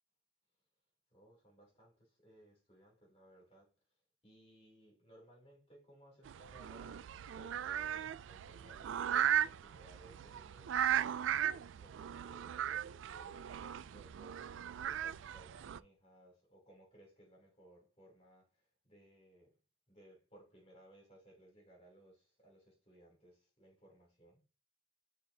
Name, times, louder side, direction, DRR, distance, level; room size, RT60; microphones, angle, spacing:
voice 1, 1.1-3.7 4.2-7.1 7.4-10.8 11.5-19.5 19.9-24.4, right 1 dB, 30° left, 3.1 m, -62 dB
sound 1, 6.3-15.8, right 10 dB, 75° right, 0.3 m, -37 dB
11.0 x 4.0 x 2.7 m
head